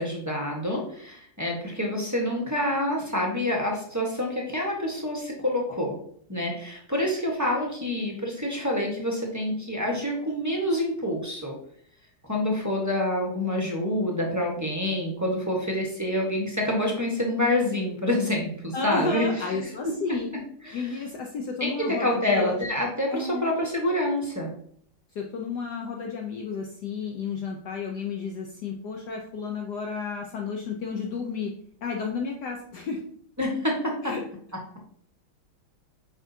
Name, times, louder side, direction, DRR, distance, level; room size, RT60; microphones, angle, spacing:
voice 1, 0.0-6.0 6.3-11.6 12.3-19.6 20.6-20.9 21.6-24.5 33.4-34.1, left 1 dB, 10° right, -2 dB, 0.8 m, -27 dB
voice 2, 18.7-20.3 20.7-22.6 23.1-23.6 25.1-31.5 31.8-33.0 34.0-34.2, left 5 dB, 65° left, 1 dB, 1.2 m, -32 dB
8.8 x 5.0 x 2.7 m, 0.63 s
omnidirectional pair, 2.2 m